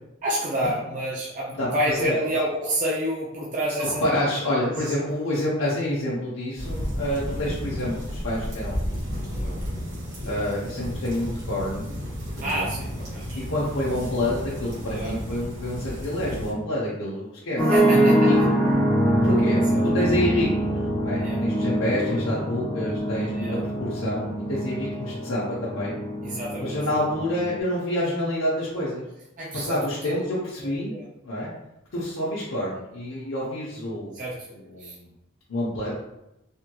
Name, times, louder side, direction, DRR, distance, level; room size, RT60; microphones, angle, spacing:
voice 1, 0.2-4.0 4.7-4.9 12.4-13.4 14.9-15.2 17.7-18.3 19.5-19.8 21.2-21.4 23.3-23.6 26.2-26.8 29.4-30.2 30.6-31.0 34.1-34.5 34.8-34.9, right 1 dB, 40° right, -5 dB, 0.4 m, -29 dB
voice 2, 1.5-2.1 3.8-8.8 9.3-9.6 10.3-11.8 12.3-12.7 13.3-17.6 17.9-18.5 19.2-25.9 26.6-29.0 29.5-30.9 31.2-31.5 31.9-34.2 34.5-35.1 35.5-35.9, left 1 dB, 80° left, -7 dB, 0.7 m, -28 dB
sound 1, 6.6-16.5, equal, 60° right, 1.3 m, -32 dB
sound 2, 17.6-27.6, equal, 15° left, 0.6 m, -24 dB
3.5 x 2.9 x 2.2 m, 0.87 s
head